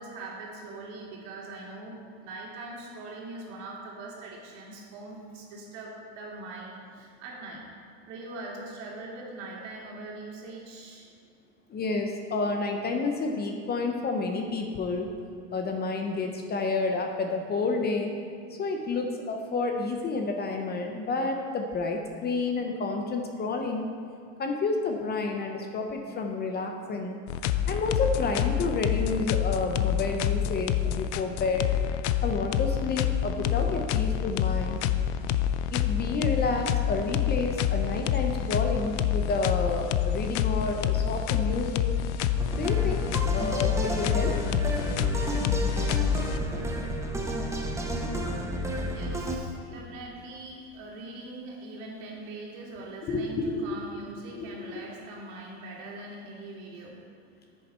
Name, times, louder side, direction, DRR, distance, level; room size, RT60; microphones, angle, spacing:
voice 1, 0.0-7.7 8.1-11.1 48.9-57.0, right 2 dB, 65° right, -2 dB, 2.4 m, -42 dB
voice 2, 11.7-15.1 15.5-18.2 18.6-23.9 24.4-27.2 27.7-31.7 32.2-34.8 35.7-41.9 42.5-43.1 43.3-44.4 53.1-53.6 54.3-54.7, left 3 dB, 25° left, 3 dB, 0.7 m, -30 dB
sound 1, 27.3-46.7, left 10 dB, 60° left, 0.5 m, -27 dB
sound 2, 42.4-49.4, equal, 10° right, 0.8 m, -31 dB
9.9 x 6.8 x 4.3 m, 2.3 s
supercardioid pair, 125°, 38 cm